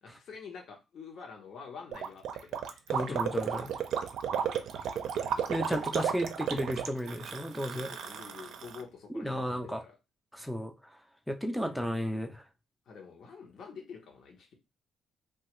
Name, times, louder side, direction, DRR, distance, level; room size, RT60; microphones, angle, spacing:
voice 1, 0.0-3.2 7.7-9.9 12.9-14.5, left 5 dB, 65° left, 0.8 m, -47 dB
Gurgling, 1.9-8.8, right 8 dB, 75° right, 0.4 m, -33 dB
voice 2, 2.9-3.7 5.5-7.9 9.1-9.8 10.3-11.0 11.3-12.4, equal, ahead, 0.4 m, -34 dB
2.8 x 2.3 x 3.0 m
cardioid pair, 95°, 0 cm